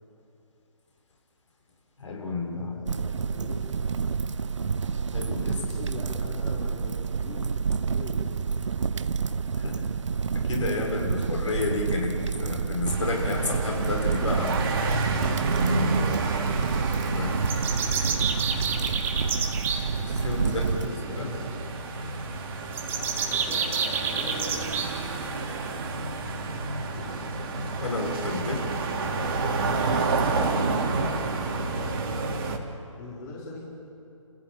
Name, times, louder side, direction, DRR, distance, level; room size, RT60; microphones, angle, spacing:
voice 1, 2.0-2.9 5.1-5.6 9.6-9.8 10.3-14.6 17.1-17.3 20.0-21.3 27.7-28.7, left 2 dB, 65° left, 0 dB, 6.3 m, -31 dB
voice 2, 2.5-3.8 5.5-6.9 7.2-7.5 7.8-8.2 9.8-9.9 16.3-16.9 17.8-18.3 20.3-21.6 23.0-24.7 26.8-27.3 30.3-32.4 33.0-33.7, left 3 dB, 30° left, -4 dB, 4.4 m, -41 dB
sound 1, 2.9-20.9, right 5 dB, 60° right, 0.9 m, -29 dB
sound 2, 12.8-32.6, right 3 dB, 45° right, 2.9 m, -30 dB
sound 3, 17.5-19.8 22.7-24.9, right 6 dB, 10° right, 1.5 m, -28 dB
29.5 x 15.5 x 9.0 m, 2.8 s
figure-of-eight pair, 140°, 17 cm